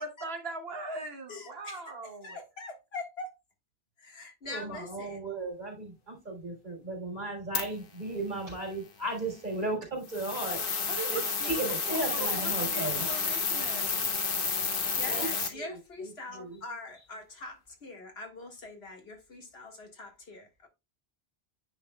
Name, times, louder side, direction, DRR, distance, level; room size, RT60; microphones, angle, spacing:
voice 1, 0.0-2.4 10.9-14.1, right 3 dB, 75° right, 1.5 m, -40 dB
voice 2, 1.3-1.9 2.2-3.4 4.0-5.2 11.4-11.8 12.2-12.3 14.8-20.7, left 3 dB, 80° left, 2.0 m, -43 dB
voice 3, 4.5-10.6 11.1-13.1 15.0-15.3 15.6-15.8 16.3-16.6, right 2 dB, 50° right, 3.4 m, -35 dB
sound 1, 7.5-7.7 10.1-15.5, left 5 dB, 60° left, 1.3 m, -30 dB
9.3 x 6.0 x 2.3 m
omnidirectional pair, 1.0 m